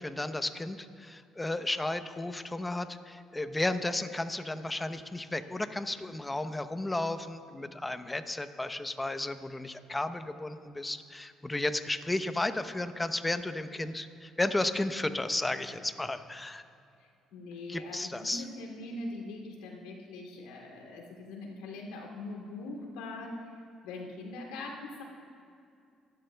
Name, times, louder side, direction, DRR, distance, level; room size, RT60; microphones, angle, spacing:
voice 1, 0.0-16.6 17.7-18.4, left 2 dB, 15° left, 10 dB, 0.8 m, -33 dB
voice 2, 17.0-25.0, left 2 dB, 90° left, -1 dB, 2.7 m, -42 dB
26.0 x 12.0 x 2.3 m, 2.4 s
supercardioid pair, 70°, 0 cm